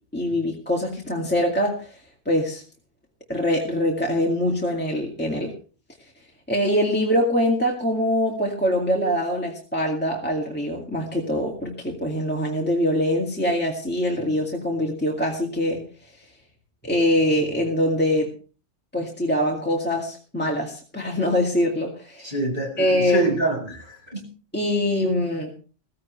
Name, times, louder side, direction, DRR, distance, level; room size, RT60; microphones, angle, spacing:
voice 1, 0.1-2.0 2.3-2.6 3.3-5.5 6.5-15.8 16.8-18.3 18.9-22.3 22.8-23.3 24.5-25.5, left 1 dB, 10° left, -1 dB, 2.2 m, -23 dB
voice 2, 22.2-24.3, right 2 dB, 45° right, 1 dB, 5.3 m, -27 dB
16.0 x 15.5 x 3.2 m, 0.38 s
omnidirectional pair, 1.3 m